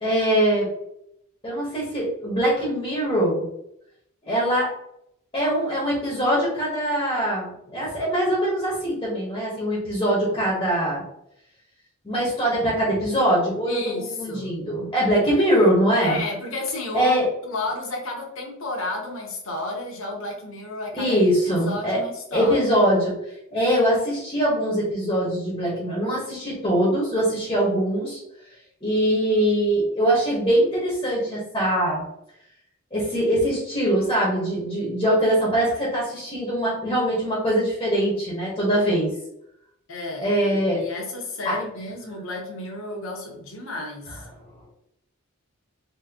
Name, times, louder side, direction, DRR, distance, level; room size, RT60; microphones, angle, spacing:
voice 1, 0.0-0.7 1.4-3.5 4.2-4.7 5.3-11.0 12.0-13.8 14.2-16.2 16.9-17.3 20.9-22.0 22.3-23.2 23.5-28.2 28.8-32.0 32.9-39.1 40.2-40.8 41.4-41.5, right 1 dB, 20° left, -6 dB, 1.2 m, -22 dB
voice 2, 13.7-14.5 15.4-15.5 16.0-17.2 17.4-22.7 39.9-44.3, left 2 dB, 60° left, -1 dB, 1.1 m, -32 dB
3.8 x 3.0 x 2.9 m, 0.76 s
head